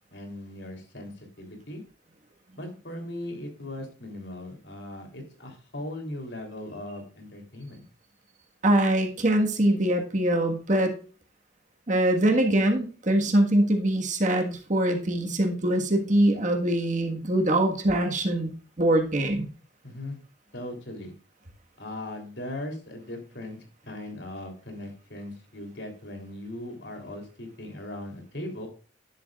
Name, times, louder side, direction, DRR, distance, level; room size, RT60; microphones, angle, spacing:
voice 1, 0.1-1.8 2.6-7.8 19.8-20.2 20.5-21.1 21.8-28.7, left 1 dB, 70° left, 3 dB, 3.3 m, -39 dB
voice 2, 8.6-10.9 11.9-19.5, right 1 dB, 40° right, 3 dB, 1.5 m, -23 dB
11.5 x 10.5 x 2.4 m, 0.38 s
head